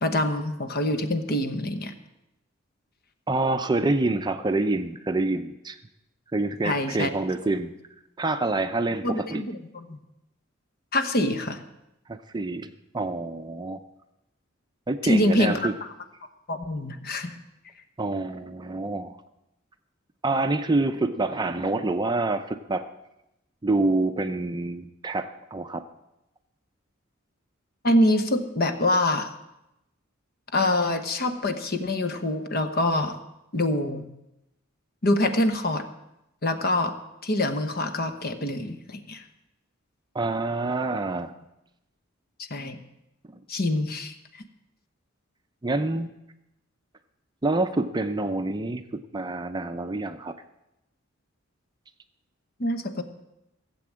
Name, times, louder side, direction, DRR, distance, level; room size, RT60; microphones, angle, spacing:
voice 1, 0.0-1.9 6.6-7.1 9.0-10.0 10.9-11.6 15.0-15.7 16.5-17.4 27.8-29.3 30.5-33.2 33.5-34.1 35.0-35.8 36.4-36.9 37.2-39.2 42.5-42.8 43.5-44.1 52.6-53.0, left 1 dB, 50° left, 8 dB, 1.0 m, -25 dB
voice 2, 3.3-5.8 6.3-7.7 8.2-9.4 12.1-13.8 14.9-15.7 18.0-19.2 20.2-22.8 23.6-25.8 40.1-41.4 45.6-46.1 47.4-50.3, right 2 dB, 20° right, 8 dB, 0.5 m, -27 dB
16.0 x 7.7 x 7.4 m, 0.89 s
head